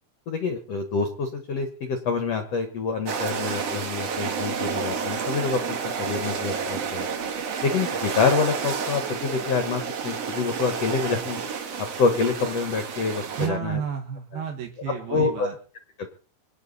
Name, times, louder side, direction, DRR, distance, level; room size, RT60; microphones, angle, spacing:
voice 1, 0.3-7.1 7.6-11.4 11.8-13.8 15.1-15.5 16.0-16.1, left 5 dB, 60° left, 7 dB, 1.7 m, -26 dB
sound 1, 3.0-13.5, right 6 dB, 50° right, 2.2 m, -30 dB
voice 2, 13.4-15.6, right 8 dB, 70° right, 1 dB, 3.4 m, -31 dB
24.5 x 9.7 x 4.1 m, 0.40 s
omnidirectional pair, 4.8 m